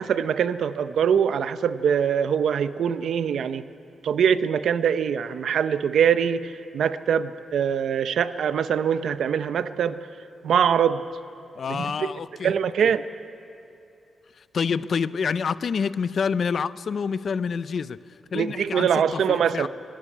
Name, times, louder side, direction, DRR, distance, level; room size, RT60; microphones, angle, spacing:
voice 1, 0.0-3.6 4.0-10.0 10.4-11.0 11.7-12.1 12.4-13.0 18.3-19.7, right 8 dB, 75° right, 12 dB, 0.7 m, -23 dB
voice 2, 11.6-12.5 12.8-12.9 14.4-19.7, left 6 dB, 45° left, 17 dB, 0.4 m, -28 dB
19.5 x 15.5 x 10.0 m, 2.7 s
wide cardioid pair, 180°, 0 cm